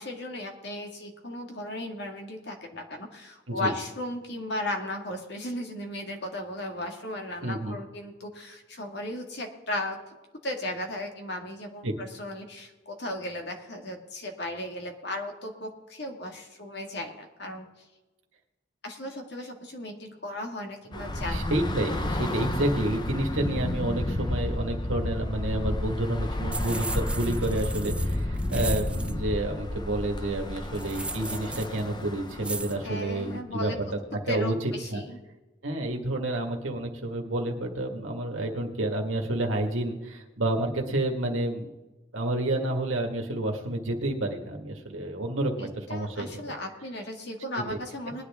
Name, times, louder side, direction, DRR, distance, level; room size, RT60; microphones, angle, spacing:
voice 1, 0.0-10.1 10.4-17.6 18.8-21.6 32.8-33.8 34.3-35.2 45.9-48.2, left 1 dB, 60° left, 3 dB, 1.9 m, -36 dB
voice 2, 7.4-7.8 11.8-11.9 20.9-35.0 35.6-41.7 42.1-46.5 47.7-47.8, right 1 dB, 90° right, 1 dB, 1.7 m, -30 dB
Bus / Traffic noise roadway noise, 20.9-33.4, left 1 dB, 25° left, 0.8 m, -31 dB
sound 1, 26.5-29.1 30.7-31.8 32.4-32.8, right 3 dB, 5° right, 0.3 m, -37 dB
20.5 x 10.0 x 3.6 m, 1.1 s
head